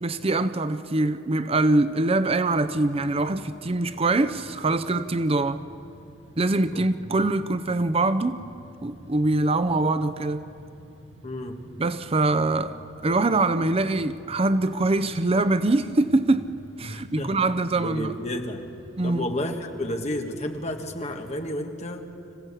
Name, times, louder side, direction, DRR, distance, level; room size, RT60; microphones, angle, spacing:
voice 1, 0.0-5.6 6.4-8.4 8.8-10.4 11.8-16.5 16.8-18.1 19.0-19.3, right 2 dB, 30° right, 0.5 m, -23 dB
sound 1, 2.4-21.5, right 1 dB, 65° right, 2.3 m, -49 dB
voice 2, 11.2-11.6 16.8-17.4 17.8-18.7 19.0-22.0, left 1 dB, 35° left, 1.6 m, -31 dB
26.0 x 15.5 x 8.3 m
head